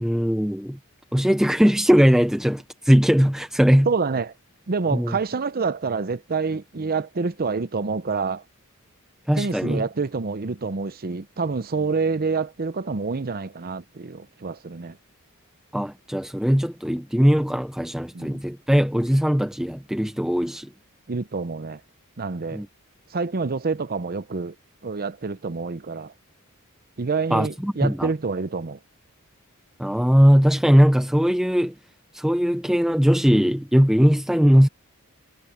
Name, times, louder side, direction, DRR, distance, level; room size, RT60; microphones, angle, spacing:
voice 1, 0.0-0.8 1.1-3.9 4.9-5.2 9.3-9.8 15.7-20.7 22.5-22.7 27.3-28.1 29.8-31.7 32.1-34.7, equal, ahead, 0.6 m, -19 dB
voice 2, 3.9-4.3 4.7-8.4 9.3-15.0 18.1-18.4 21.1-21.8 22.2-22.6 23.1-24.5 24.8-26.1 27.0-28.8, right 4 dB, 45° right, 0.7 m, -27 dB
head